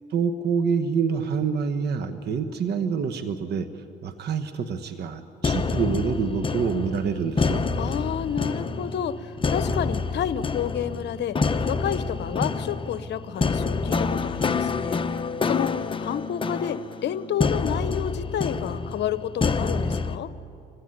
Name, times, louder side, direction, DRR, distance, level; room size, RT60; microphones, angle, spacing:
voice 1, 0.0-7.6, right 6 dB, 55° right, 9 dB, 1.2 m, -27 dB
sound 1, 5.4-20.2, left 4 dB, 25° left, 1.0 m, -27 dB
voice 2, 7.8-15.0 15.4-20.3, left 9 dB, 60° left, 14 dB, 1.0 m, -30 dB
25.0 x 16.0 x 9.7 m, 2.7 s
supercardioid pair, 85°, 20 cm